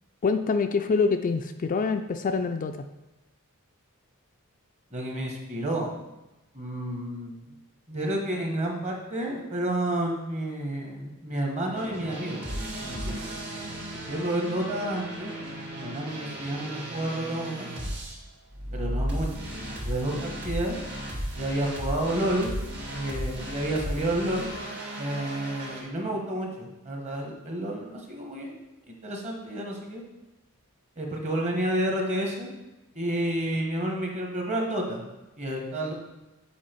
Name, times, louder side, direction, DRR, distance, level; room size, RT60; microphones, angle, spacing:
voice 1, 0.2-2.8, left 4 dB, 35° left, 7 dB, 0.3 m, -25 dB
voice 2, 4.9-5.9 6.5-7.4 7.9-12.4 12.8-13.8 14.1-15.3 15.8-17.7 18.7-20.8 21.4-22.5 22.9-24.5 25.0-28.6 28.9-30.0 31.0-32.5 32.9-35.0 35.4-35.9, right 1 dB, 30° right, 1 dB, 1.3 m, -30 dB
sound 1, 11.7-18.2 18.5-25.8, equal, 50° right, 1.8 m, -35 dB
7.3 x 5.0 x 4.5 m, 1.0 s
head